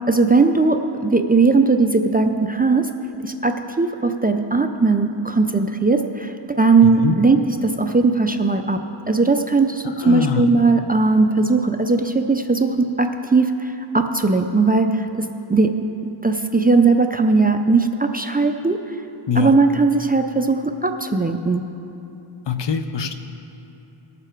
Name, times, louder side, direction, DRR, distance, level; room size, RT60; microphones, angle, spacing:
voice 1, 0.1-2.9 3.2-15.7 16.0-18.8 19.4-21.6, right 3 dB, 20° right, 5 dB, 0.3 m, -18 dB
voice 2, 6.8-7.2 9.8-10.4 19.3-19.6 22.5-23.1, left 7 dB, 60° left, 9 dB, 0.7 m, -23 dB
17.5 x 6.9 x 4.5 m, 2.9 s
wide cardioid pair, 125°, 49 cm